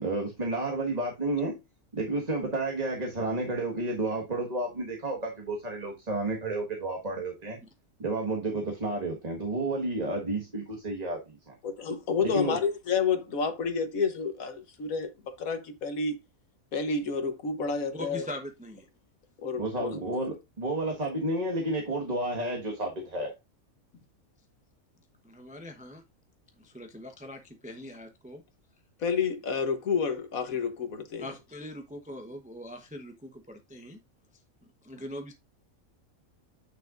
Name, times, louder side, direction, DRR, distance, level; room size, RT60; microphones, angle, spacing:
voice 1, 0.0-1.5 1.9-7.6 8.0-11.5 12.2-12.6 19.6-23.3, right 2 dB, 30° right, 1.7 m, -31 dB
voice 2, 11.6-16.2 16.7-18.2 19.4-19.9 29.0-31.3, left 5 dB, 90° left, 1.6 m, -29 dB
voice 3, 17.9-18.9 25.2-26.0 26.6-28.4 31.2-34.0 34.8-35.3, equal, 5° right, 0.8 m, -42 dB
9.2 x 6.4 x 2.5 m
omnidirectional pair, 1.4 m